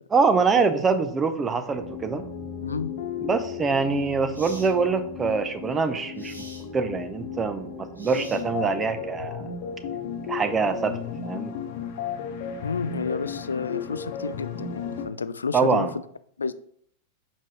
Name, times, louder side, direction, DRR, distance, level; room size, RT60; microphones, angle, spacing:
voice 1, 0.1-2.2 3.2-6.3 6.7-9.5 10.3-11.0 11.2-11.5 15.5-15.9, right 5 dB, 20° right, 10 dB, 0.8 m, -24 dB
sound 1, 1.7-15.1, left 6 dB, 50° left, 1.2 m, -35 dB
sound 2, 3.4-3.6 4.3-4.7 6.2-6.7 7.9-8.7, right 1 dB, 85° right, 1.6 m, -45 dB
voice 2, 12.6-15.9 16.4-16.5, left 5 dB, 75° left, 15 dB, 0.4 m, -30 dB
7.4 x 5.3 x 3.2 m, 0.62 s
figure-of-eight pair, 90°, 0 cm